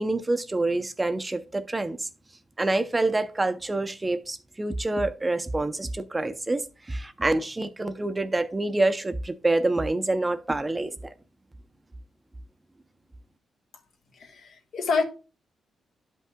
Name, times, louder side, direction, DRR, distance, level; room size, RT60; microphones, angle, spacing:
voice 1, 0.0-2.1 2.6-11.1, right 2 dB, 20° right, 0.5 m, -27 dB
voice 2, 14.2-15.0, left 4 dB, 75° left, 1.3 m, -27 dB
11.5 x 5.5 x 2.2 m
cardioid pair, 105°, 0 cm